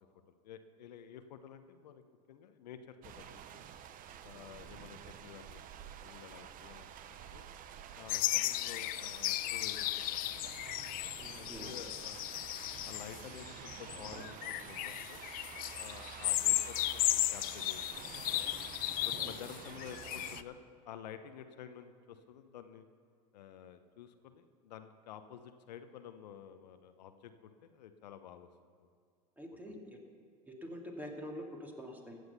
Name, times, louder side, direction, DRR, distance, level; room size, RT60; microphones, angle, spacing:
voice 1, 0.3-2.0 2.3-3.6 4.2-5.6 6.0-7.4 8.0-10.2 11.3-12.3 12.8-15.2 15.8-17.8 19.1-22.8 23.3-28.7 29.7-29.8, left 8 dB, 80° left, 9 dB, 0.8 m, -51 dB
sound 1, 3.0-20.4, right 9 dB, 40° right, 0.8 m, -49 dB
sound 2, 8.1-20.4, left 17 dB, 45° left, 0.5 m, -35 dB
voice 2, 11.2-11.8 19.3-19.4 29.4-30.0 30.5-32.2, equal, 10° right, 1 dB, 2.2 m, -46 dB
15.0 x 8.0 x 6.9 m, 2.1 s
hypercardioid pair, 95°, 21 cm